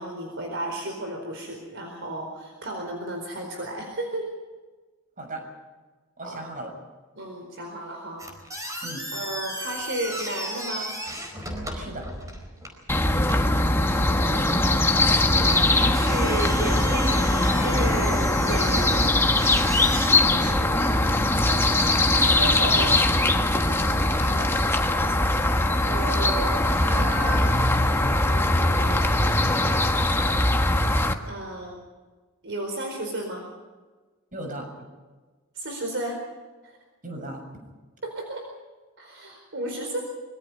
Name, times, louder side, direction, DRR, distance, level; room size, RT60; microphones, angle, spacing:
voice 1, 0.0-4.3 6.2-6.5 7.1-8.2 9.1-11.0 13.3-14.6 15.4-19.1 22.1-23.0 25.8-27.5 28.2-29.2 31.3-31.8 32.4-33.5 35.5-36.2 36.6-36.8 38.0-38.5 39.0-40.0, right 1 dB, 55° right, 2 dB, 4.4 m, -33 dB
voice 2, 6.2-6.7 8.8-9.1 11.7-12.1 20.3-20.7 24.1-24.5 34.3-34.7 37.0-37.4, right 1 dB, 35° right, 3 dB, 6.6 m, -36 dB
sound 1, 8.2-20.1, equal, 15° right, 4.5 m, -36 dB
sound 2, 12.9-31.1, left 2 dB, 10° left, 1.3 m, -21 dB
25.0 x 22.5 x 5.6 m, 1.3 s
head